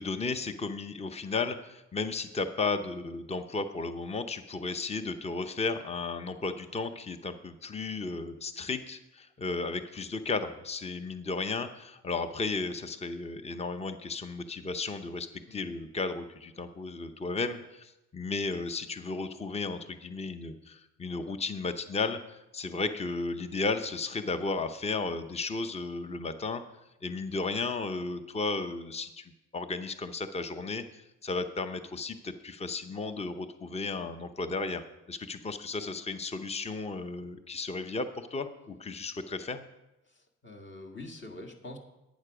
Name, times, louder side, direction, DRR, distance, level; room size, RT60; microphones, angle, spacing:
voice 1, 0.0-26.6 27.0-29.2 29.5-39.6, left 3 dB, 20° left, 10 dB, 0.8 m, -34 dB
voice 2, 40.4-41.8, left 2 dB, 40° left, 3 dB, 1.8 m, -44 dB
11.5 x 9.2 x 4.9 m, 0.94 s
cardioid pair, 90°, 30 cm